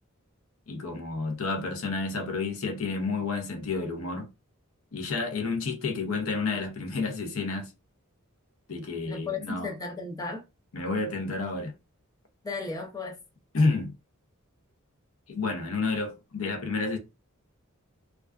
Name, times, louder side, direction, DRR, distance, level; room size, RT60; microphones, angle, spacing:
voice 1, 0.7-4.3 4.9-7.7 8.7-9.7 10.7-11.8 13.5-13.9 15.3-17.0, left 3 dB, 70° left, 0.6 m, -30 dB
voice 2, 9.1-10.4 12.4-13.2, left 4 dB, 15° left, 0.4 m, -35 dB
2.4 x 2.3 x 2.3 m
head